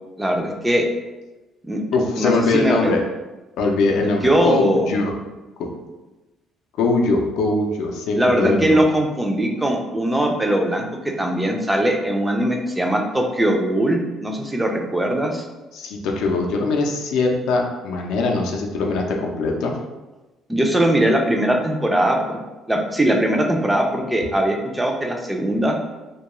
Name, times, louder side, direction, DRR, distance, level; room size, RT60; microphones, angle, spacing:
voice 1, 0.2-0.8 1.7-1.8 2.2-2.9 4.2-4.9 8.2-15.5 20.5-22.4 22.7-25.8, right 1 dB, 10° right, 2 dB, 0.3 m, -20 dB
voice 2, 1.9-3.0 3.6-5.1 5.6-5.7 6.8-8.8 15.7-19.8, left 3 dB, 80° left, 1 dB, 0.4 m, -21 dB
2.2 x 2.2 x 2.9 m, 1.1 s
cardioid pair, 135°, 0 cm